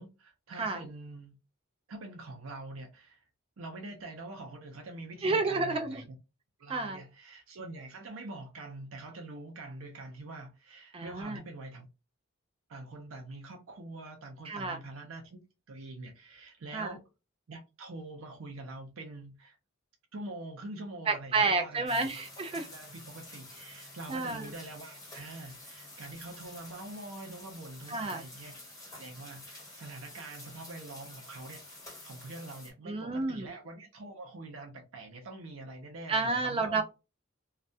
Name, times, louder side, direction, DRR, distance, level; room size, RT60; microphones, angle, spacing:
voice 1, 0.0-1.3 1.9-3.2 3.6-6.2 6.6-11.9 12.7-15.4 15.7-17.0 17.5-19.6 20.1-22.1 22.5-28.5 28.9-36.8, right 2 dB, 80° right, 0.5 m, -45 dB
voice 2, 5.2-6.0 6.7-7.0 10.9-11.4 14.5-14.8 16.7-17.0 21.1-22.7 24.1-24.4 27.9-28.2 32.9-33.5 36.1-36.8, right 3 dB, 25° right, 0.4 m, -30 dB
sound 1, 21.9-32.7, left 2 dB, 15° left, 1.2 m, -49 dB
2.3 x 2.2 x 2.6 m
head